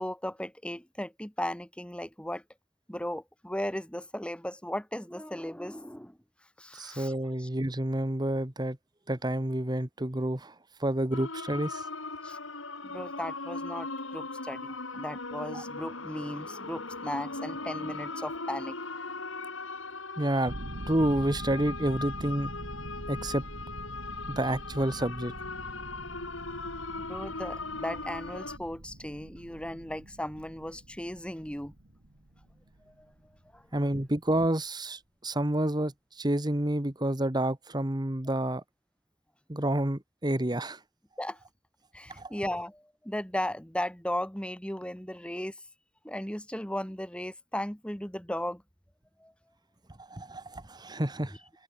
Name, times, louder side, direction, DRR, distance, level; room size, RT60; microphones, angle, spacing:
voice 1, 0.0-2.4 2.9-6.2 6.6-7.1 7.4-7.5 12.2-12.4 12.8-18.8 27.0-31.7 32.9-33.1 33.5-33.6 41.2-41.4 41.9-45.5 46.0-48.6 49.2-49.3, left 1 dB, 5° left, 1.9 m, -36 dB
voice 2, 6.7-8.8 9.1-10.5 10.8-11.9 15.5-15.6 20.2-20.5 20.9-22.5 23.1-23.4 24.3-25.3 33.7-38.6 39.5-40.8 42.2-42.3 50.0-51.4, right 1 dB, 20° right, 1.6 m, -29 dB
sound 1, 11.1-28.6, left 3 dB, 75° left, 6.9 m, -39 dB
sound 2, 20.4-33.6, right 1 dB, 60° right, 1.8 m, -44 dB
head